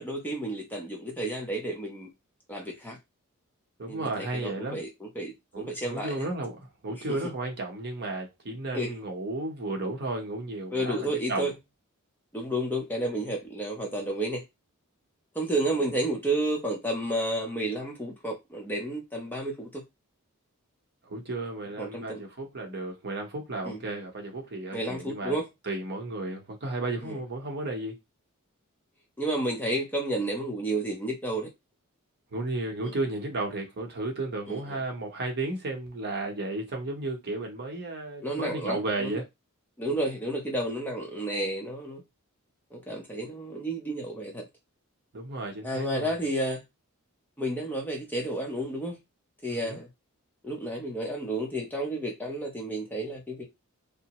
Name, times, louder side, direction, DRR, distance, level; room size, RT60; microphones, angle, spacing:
voice 1, 0.0-2.1 2.5-3.0 3.9-6.3 6.9-7.3 8.7-9.0 10.7-11.5 12.3-14.4 15.3-19.8 21.8-22.2 23.6-23.8 24.7-25.5 27.0-27.2 29.2-31.5 32.8-33.0 34.5-34.8 38.2-39.2 39.8-42.0 42.7-44.5 45.6-46.6 47.4-49.0 49.4-49.9 50.4-53.4, right 1 dB, 10° left, 0.6 m, -31 dB
voice 2, 3.8-4.8 5.5-6.6 6.8-11.5 21.0-25.4 25.7-28.0 32.3-39.2 45.1-46.1 49.5-49.8, right 2 dB, 50° right, 0.8 m, -33 dB
2.7 x 2.0 x 2.9 m
head